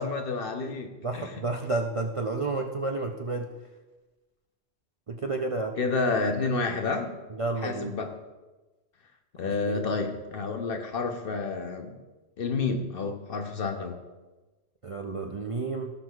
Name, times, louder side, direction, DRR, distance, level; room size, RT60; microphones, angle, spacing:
voice 1, 0.0-1.3 5.8-7.1 7.6-8.2 9.4-12.0 12.4-14.0, left 4 dB, 60° left, 5 dB, 1.0 m, -30 dB
voice 2, 1.0-3.5 5.1-5.8 7.3-7.9 9.4-10.2 14.8-15.9, right 3 dB, 40° right, 2 dB, 0.5 m, -31 dB
17.0 x 6.1 x 2.4 m, 1.2 s
omnidirectional pair, 1.1 m